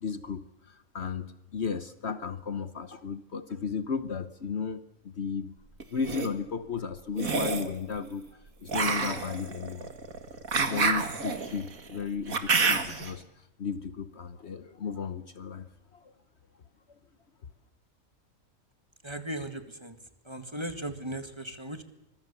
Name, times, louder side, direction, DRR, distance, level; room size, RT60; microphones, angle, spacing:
voice 1, 0.0-5.5 5.9-8.3 8.6-9.9 10.6-13.2 13.6-15.7 15.9-16.1, left 6 dB, 55° left, 11 dB, 1.2 m, -34 dB
sound 1, 5.8-6.3 7.2-7.7 8.7-13.1, right 4 dB, 85° right, 2.4 m, -28 dB
voice 2, 19.0-20.0 20.3-21.8, right 1 dB, 20° right, 8 dB, 1.9 m, -37 dB
25.0 x 22.0 x 6.9 m, 0.96 s
omnidirectional pair, 1.4 m